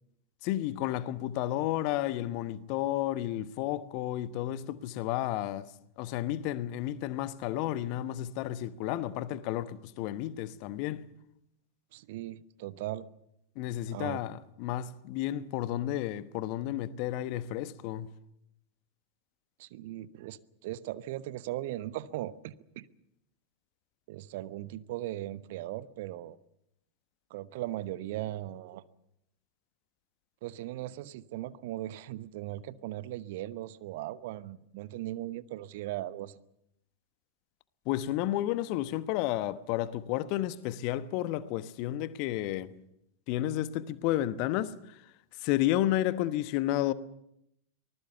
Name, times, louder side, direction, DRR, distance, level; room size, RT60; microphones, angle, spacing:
voice 1, 0.4-5.7 6.0-11.0 13.6-18.1 37.9-42.7 43.3-45.0 45.4-46.9, left 13 dB, 45° left, 1.1 m, -32 dB
voice 2, 11.9-13.1 13.9-14.2 19.6-22.9 24.1-26.4 27.3-28.8 30.4-36.3, right 15 dB, 50° right, 1.0 m, -38 dB
24.5 x 20.0 x 6.9 m
figure-of-eight pair, 90°, 0 cm